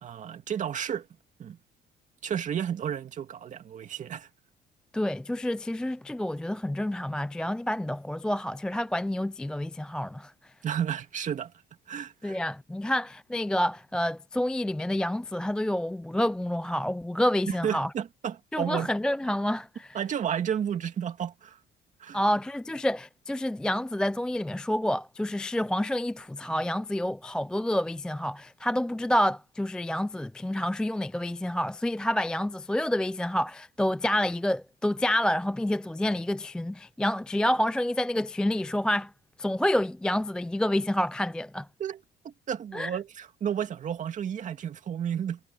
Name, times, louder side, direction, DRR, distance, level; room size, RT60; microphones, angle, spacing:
voice 1, 0.0-1.1 1.4-1.6 2.2-4.3 10.6-11.5 11.9-12.4 17.5-18.9 19.9-21.6 22.0-22.2 41.8-42.0 42.2-45.4, right 8 dB, 45° right, 2.2 m, -32 dB
voice 2, 4.9-10.5 12.2-17.9 18.5-20.0 22.1-39.1 39.4-41.7 42.7-42.9, left 1 dB, 5° left, 0.3 m, -28 dB
cardioid pair, 110°, 17 cm